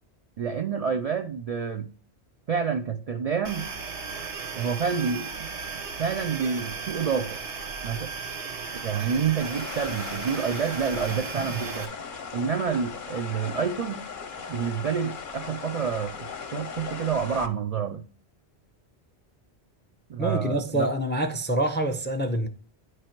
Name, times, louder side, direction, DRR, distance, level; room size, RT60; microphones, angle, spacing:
voice 1, 0.4-1.9 2.5-3.7 4.6-5.5 6.0-7.4 7.8-8.1 8.8-11.9 12.3-14.0 14.5-16.1 16.5-18.0 20.1-20.9, right 6 dB, 60° right, 0.4 m, -28 dB
sound 1, 3.4-11.8, right 5 dB, 90° right, 1.3 m, -36 dB
sound 2, 9.4-17.5, left 6 dB, 55° left, 0.8 m, -38 dB
voice 2, 20.2-22.5, right 1 dB, 15° left, 0.4 m, -26 dB
9.5 x 3.4 x 4.4 m
omnidirectional pair, 1.1 m